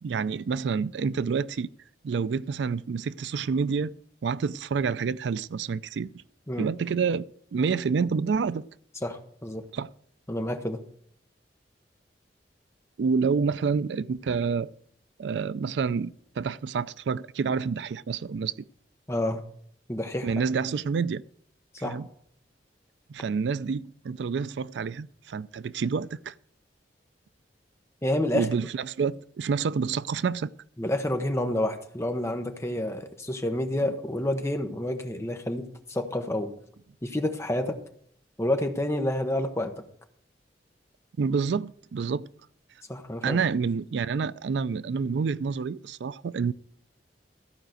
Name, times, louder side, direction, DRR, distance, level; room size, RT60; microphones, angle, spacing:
voice 1, 0.0-1.7 2.0-3.9 4.2-6.1 6.6-8.7 9.7-9.9 13.0-14.7 15.2-18.5 20.2-21.2 21.8-22.1 23.1-26.3 28.3-30.5 41.2-42.3 43.2-46.5, right 5 dB, 75° right, 0.4 m, -28 dB
voice 2, 9.0-9.6 10.3-10.8 19.1-19.4 19.9-20.3 21.8-22.0 28.0-28.5 30.8-36.5 37.0-37.8 38.4-39.7 42.9-43.4, left 1 dB, 15° left, 1.0 m, -29 dB
14.5 x 5.0 x 7.8 m
head